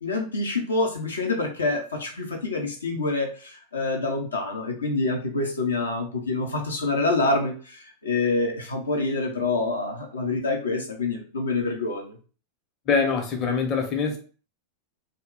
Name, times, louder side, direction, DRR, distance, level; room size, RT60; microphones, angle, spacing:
voice 1, 0.0-7.5 8.0-12.1, left 3 dB, 75° left, 0.6 m, -26 dB
voice 2, 12.9-14.2, left 5 dB, 35° left, 0.7 m, -24 dB
2.3 x 2.2 x 3.5 m
figure-of-eight pair, 90°, 0 cm